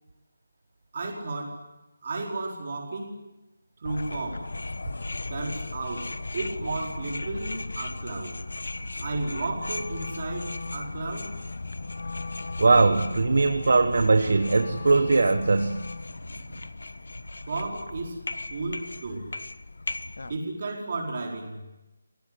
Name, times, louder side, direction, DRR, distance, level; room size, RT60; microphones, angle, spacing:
voice 1, 0.9-1.6 2.0-3.2 3.8-4.5 5.3-8.4 9.0-11.3 17.5-18.2 18.5-19.3 20.2-21.7, right 3 dB, 30° right, 0 dB, 4.7 m, -33 dB
sound 1, 3.8-20.4, left 2 dB, 70° left, 1.3 m, -37 dB
Wind instrument woodwind instrument, 9.5-16.2, left 3 dB, 55° left, 1.9 m, -40 dB
voice 2, 12.6-15.8, right 3 dB, 50° right, 8 dB, 1.4 m, -20 dB
26.5 x 18.5 x 9.7 m, 1.0 s
figure-of-eight pair, 180°, 0 cm